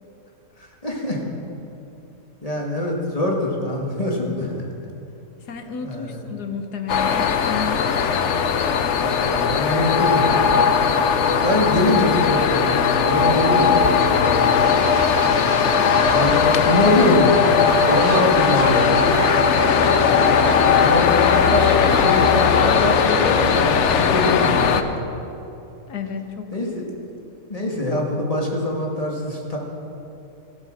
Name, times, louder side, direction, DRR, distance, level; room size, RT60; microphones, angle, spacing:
voice 1, 0.6-1.2 2.4-4.6 5.8-6.2 9.0-10.5 11.4-14.8 16.1-18.9 19.2-19.3 19.6-19.8 20.1-25.0 26.5-26.9 27.5-29.6, left 1 dB, 25° left, -1 dB, 2.2 m, -24 dB
voice 2, 5.5-8.3 25.9-26.5, left 6 dB, 85° left, 6 dB, 1.7 m, -32 dB
sound 1, 6.9-24.8, left 6 dB, 55° left, 0.9 m, -18 dB
sound 2, 14.6-23.6, right 10 dB, 80° right, 1.1 m, -32 dB
14.5 x 12.0 x 6.6 m, 2.9 s
omnidirectional pair, 1.6 m